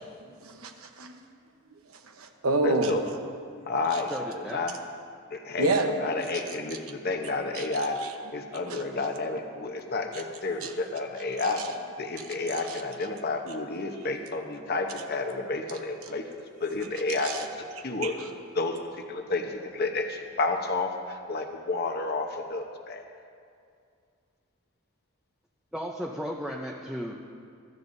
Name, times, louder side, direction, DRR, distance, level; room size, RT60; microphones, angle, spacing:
voice 1, 0.4-1.1 2.2-3.0 5.6-5.9 7.5-7.7 8.0-8.1 8.7-8.8 10.6-10.8 11.6-11.7 12.2-12.4 12.7-12.8 14.6-14.7 17.2-17.4 18.0-18.3, right 2 dB, 85° right, 4 dB, 1.0 m, -29 dB
voice 2, 2.6-3.0 3.7-4.8 5.3-8.0 8.3-11.6 12.0-16.2 16.6-18.1 18.5-23.0, left 3 dB, 50° left, 3 dB, 0.9 m, -31 dB
voice 3, 4.1-4.7 25.7-27.1, equal, 5° right, -2 dB, 0.6 m, -35 dB
22.5 x 12.5 x 2.7 m, 2.3 s
head